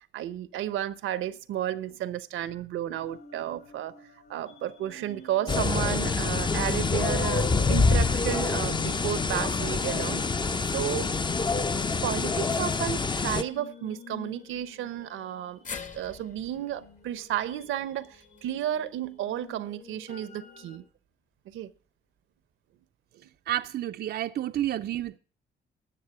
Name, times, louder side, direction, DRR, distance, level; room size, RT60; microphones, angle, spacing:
voice 1, 0.0-4.0 4.3-10.2 10.5-11.1 12.0-20.8 21.5-21.7 23.1-23.2, right 12 dB, 80° right, 0.8 m, -33 dB
sound 1, 3.0-20.8, left 3 dB, 55° left, 5.5 m, -50 dB
sound 2, 5.5-13.4, left 4 dB, 25° left, 0.6 m, -26 dB
sound 3, 15.6-19.9 20.3-20.4 21.5-21.6, left 5 dB, 40° left, 1.3 m, -46 dB
voice 2, 23.5-25.2, right 12 dB, 55° right, 0.5 m, -30 dB
12.0 x 6.8 x 7.8 m
cardioid pair, 90°, 20 cm